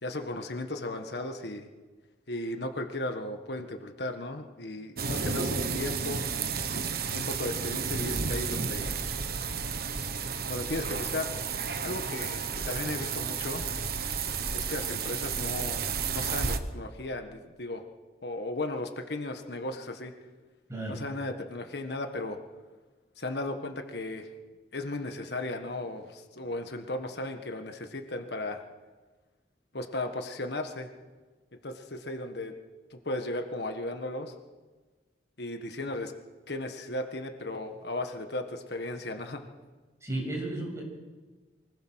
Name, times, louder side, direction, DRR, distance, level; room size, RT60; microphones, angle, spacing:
voice 1, 0.0-1.7 2.3-6.3 7.1-9.0 10.5-11.3 11.8-13.7 14.5-17.8 18.2-20.1 20.9-22.4 23.2-24.3 24.7-28.6 29.7-30.9 31.6-32.5 32.9-34.3 35.4-36.1 36.5-39.5, left 2 dB, 65° left, 6 dB, 1.5 m, -35 dB
sound 1, 5.0-16.6, right 5 dB, 55° right, 1.2 m, -32 dB
voice 2, 40.0-40.8, right 2 dB, 15° right, -2 dB, 7.3 m, -33 dB
24.0 x 20.0 x 6.4 m, 1.3 s
head